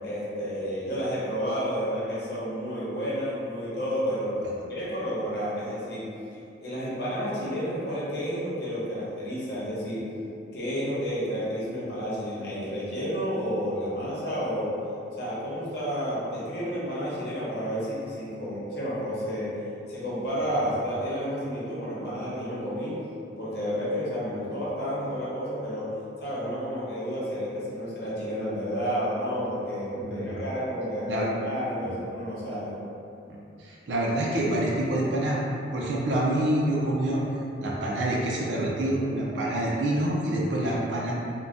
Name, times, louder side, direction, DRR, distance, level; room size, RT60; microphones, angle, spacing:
voice 1, 0.0-4.4 4.7-6.0 6.6-10.0 10.5-14.7 15.2-19.5 19.9-22.9 23.4-25.9 26.2-32.7, equal, 60° left, -9 dB, 0.9 m, -31 dB
voice 2, 30.0-30.5 31.1-31.3 31.8-31.9 33.3-35.4 35.7-37.2 37.6-41.1, right 1 dB, 80° right, -4 dB, 0.4 m, -27 dB
2.5 x 2.2 x 3.4 m, 2.6 s
head